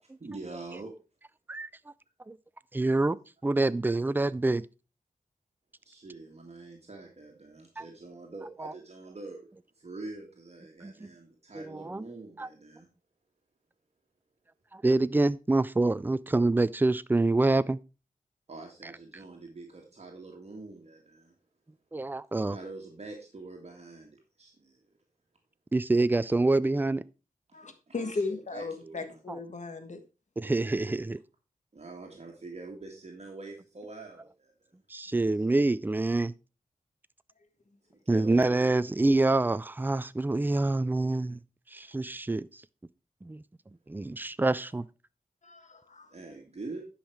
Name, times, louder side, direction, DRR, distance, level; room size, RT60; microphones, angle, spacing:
voice 1, 0.0-0.9 5.9-9.5 9.8-12.9 18.5-21.4 22.5-24.8 27.5-27.6 27.9-29.2 30.4-31.0 31.7-34.5 38.1-38.5 46.1-46.8, right 3 dB, 45° right, 1.9 m, -45 dB
voice 2, 2.7-4.7 7.8-7.9 8.6-8.7 10.8-11.1 11.5-12.0 12.4-12.5 14.7-17.8 18.8-18.9 21.9-22.6 25.7-27.0 29.3-29.4 30.4-31.2 34.9-36.3 38.1-41.4 41.7-42.6 43.2-44.9, right 2 dB, 15° right, 0.4 m, -26 dB
voice 3, 27.5-30.0 45.4-46.1, left 3 dB, 55° left, 1.4 m, -36 dB
10.5 x 5.6 x 4.6 m
wide cardioid pair, 95°, 15 cm